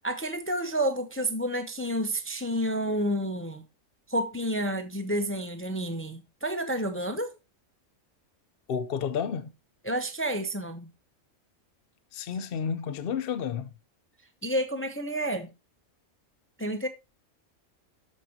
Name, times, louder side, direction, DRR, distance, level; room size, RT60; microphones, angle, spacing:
voice 1, 0.0-3.6 4.1-7.3 9.8-10.9 14.4-15.5 16.6-16.9, right 1 dB, 15° left, 0.6 m, -30 dB
voice 2, 8.7-9.5 12.1-13.7, left 7 dB, 55° left, 0.7 m, -31 dB
12.5 x 5.1 x 2.8 m
omnidirectional pair, 1.3 m